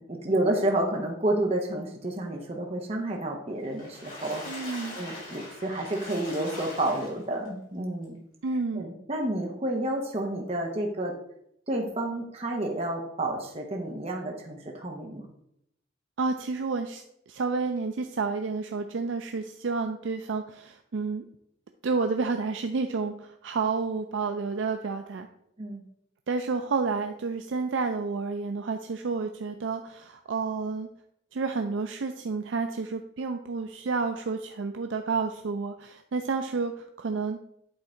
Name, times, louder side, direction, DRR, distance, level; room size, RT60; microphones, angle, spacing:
voice 1, 0.0-4.4 4.9-8.2 8.8-11.1 11.7-15.3 25.6-25.8, right 1 dB, 35° right, 1 dB, 0.9 m, -30 dB
Water / Splash splatter, 3.6-7.5 8.0-8.1 8.5-8.6, left 1 dB, 45° left, 3.0 m, -41 dB
voice 2, 4.5-5.0 8.4-8.9 16.2-21.2 21.8-25.3 26.3-30.9 31.3-37.5, right 4 dB, 80° right, 6 dB, 0.4 m, -30 dB
8.8 x 3.7 x 4.4 m, 0.75 s
head